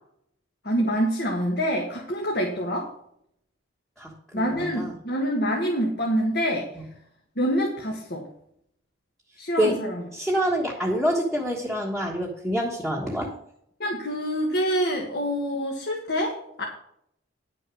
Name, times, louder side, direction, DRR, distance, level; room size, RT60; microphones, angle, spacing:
voice 1, 0.6-2.9 4.3-6.7 7.4-8.3 9.4-10.0 13.8-16.6, equal, 55° left, -1 dB, 1.8 m, -26 dB
voice 2, 4.0-4.9 9.6-9.8 10.1-13.3, equal, ahead, -3 dB, 1.4 m, -26 dB
10.0 x 6.4 x 6.3 m, 0.71 s
head